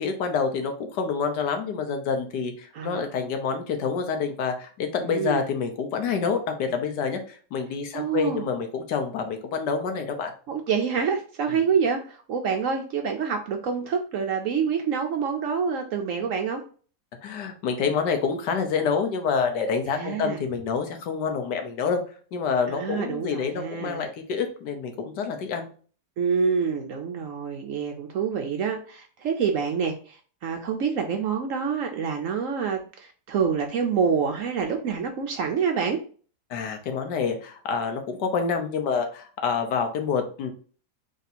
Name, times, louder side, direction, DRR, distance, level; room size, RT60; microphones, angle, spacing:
voice 1, 0.0-10.3 17.2-22.0 22.3-25.7 36.5-40.5, left 5 dB, 80° left, 6 dB, 1.4 m, -27 dB
voice 2, 2.7-3.1 5.0-5.5 7.9-8.5 10.5-16.6 19.9-20.4 22.7-24.1 26.2-36.0, right 6 dB, 65° right, 4 dB, 0.8 m, -27 dB
3.6 x 2.7 x 4.1 m, 0.40 s
omnidirectional pair, 1.8 m